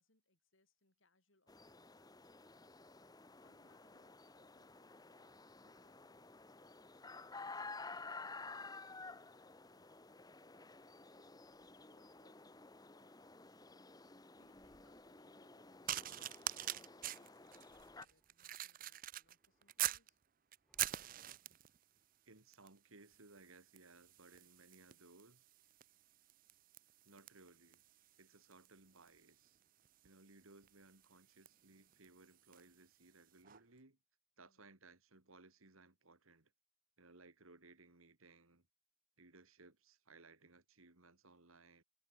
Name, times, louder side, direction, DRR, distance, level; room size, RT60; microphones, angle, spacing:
voice 1, 0.0-2.6 3.4-20.2 34.4-34.7, left 2 dB, 65° left, 5.2 m, -77 dB
sound 1, 1.5-18.0, left 3 dB, 20° left, 0.9 m, -53 dB
sound 2, 11.3-12.3 12.7-14.0 14.3-15.4 15.7-17.1 17.5-18.5 19.0-21.7, equal, ahead, 6.4 m, -75 dB
sound 3, 15.9-20.1 20.5-21.8 22.5-22.8 23.1-32.7 33.4-33.6, right 13 dB, 40° right, 0.5 m, -45 dB
voice 2, 22.3-25.4 27.0-27.8 28.2-29.6 30.0-34.0 34.4-36.5 37.0-38.7 39.2-41.8, right 3 dB, 80° right, 2.7 m, -63 dB
head